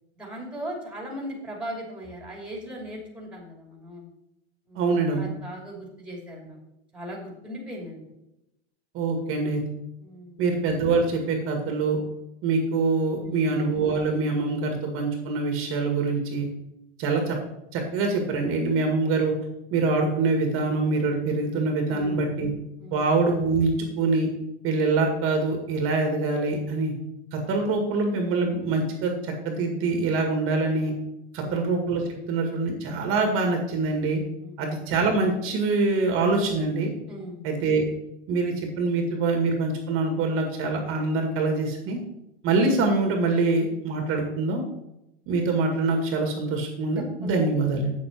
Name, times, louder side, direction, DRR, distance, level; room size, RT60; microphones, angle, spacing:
voice 1, 0.1-4.1 4.7-4.9 5.2-6.6 6.9-8.1 10.0-10.4 13.1-13.4 21.9-22.2 22.8-23.0 31.3-31.6 34.4-34.6 37.1-37.4 47.2-47.4, equal, 5° right, -1 dB, 2.7 m, -38 dB
voice 2, 4.8-5.3 8.9-9.6 10.4-12.0 12.4-16.5 17.0-17.4 17.7-19.3 19.7-22.5 22.9-24.3 24.6-26.9 27.3-30.9 31.3-34.2 34.6-36.9 37.4-37.8 38.3-42.0 42.4-44.6 45.3-47.9, right 3 dB, 40° right, 3 dB, 1.9 m, -24 dB
8.5 x 7.1 x 4.5 m, 0.88 s
supercardioid pair, 130°, 32 cm